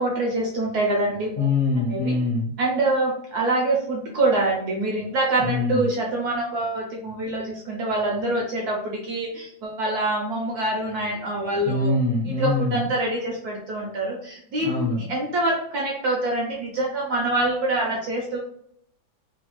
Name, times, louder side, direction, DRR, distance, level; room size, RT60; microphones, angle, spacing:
voice 1, 0.0-1.5 1.9-2.2 2.6-11.9 12.4-18.4, right 2 dB, 70° right, -2 dB, 1.0 m, -25 dB
voice 2, 1.4-2.5 5.4-5.8 11.6-12.9 14.6-15.1, left 3 dB, 45° left, -6 dB, 0.9 m, -24 dB
3.2 x 2.3 x 2.9 m, 0.69 s
omnidirectional pair, 2.1 m